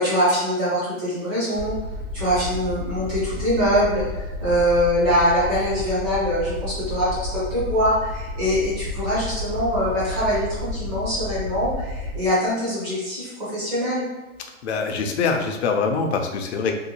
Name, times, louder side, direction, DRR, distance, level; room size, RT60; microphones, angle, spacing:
voice 1, 0.0-1.8 2.1-14.1, equal, 10° right, -9 dB, 0.4 m, -23 dB
Aircraft, 1.5-12.2, left 1 dB, 75° right, 0.7 m, -31 dB
voice 2, 14.6-16.7, left 5 dB, 55° left, 4 dB, 0.5 m, -24 dB
2.7 x 2.2 x 2.8 m, 1.1 s
hypercardioid pair, 155°, 40 cm